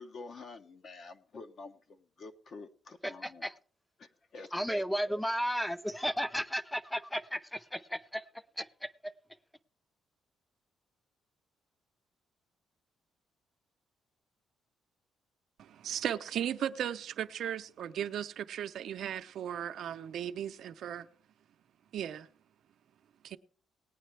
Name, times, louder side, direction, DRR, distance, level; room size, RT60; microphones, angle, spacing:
voice 1, 0.0-3.5 4.3-5.2, left 3 dB, 50° left, 1.0 m, -48 dB
voice 2, 3.0-3.5 4.5-8.2 8.6-8.7, equal, 5° left, 0.6 m, -34 dB
voice 3, 15.6-21.1 21.9-22.3 23.2-23.4, right 10 dB, 70° right, 0.6 m, -36 dB
18.5 x 9.2 x 3.3 m
cardioid pair, 90°, 0 cm